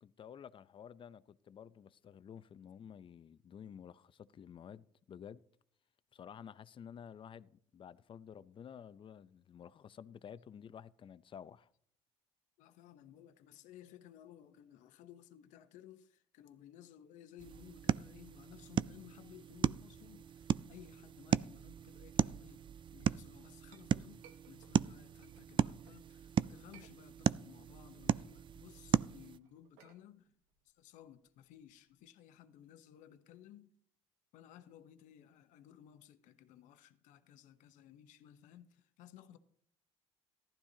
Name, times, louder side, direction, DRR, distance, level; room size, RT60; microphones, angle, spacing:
voice 1, 0.0-5.4 6.1-11.7, left 8 dB, 40° left, 0.6 m, -52 dB
voice 2, 12.6-30.4 30.6-33.7 34.3-39.4, left 11 dB, 70° left, 0.9 m, -58 dB
sound 1, 17.4-29.4, right 9 dB, 40° right, 0.4 m, -36 dB
Chink clink, 23.3-26.0 26.5-27.5 27.9-32.0, right 8 dB, 85° right, 1.0 m, -65 dB
14.5 x 12.0 x 2.8 m
supercardioid pair, 75°, 13 cm